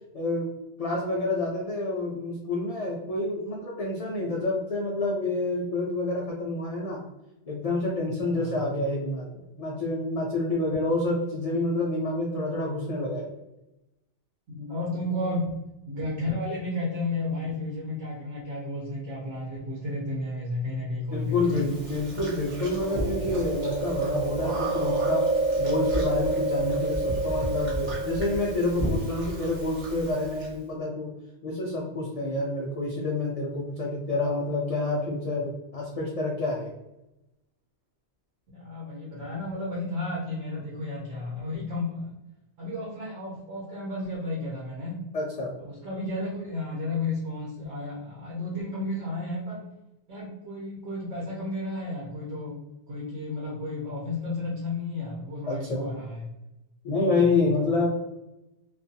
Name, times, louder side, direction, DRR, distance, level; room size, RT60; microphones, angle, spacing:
voice 1, 0.1-0.5 0.8-7.0 7.5-13.3 15.1-15.3 21.1-25.3 25.6-31.1 31.4-36.7 45.1-45.5 55.5-56.0 56.8-57.9, left 2 dB, 70° left, -2 dB, 0.3 m, -28 dB
voice 2, 14.5-15.6 15.9-21.7 38.5-42.1 42.6-45.0 45.6-49.6 50.1-52.6 52.9-56.3 57.5-57.7, left 2 dB, 70° right, -5 dB, 1.0 m, -32 dB
Chewing mastication, 21.5-30.5, right 2 dB, 45° right, 1.0 m, -29 dB
2.4 x 2.3 x 2.6 m, 0.94 s
omnidirectional pair, 1.2 m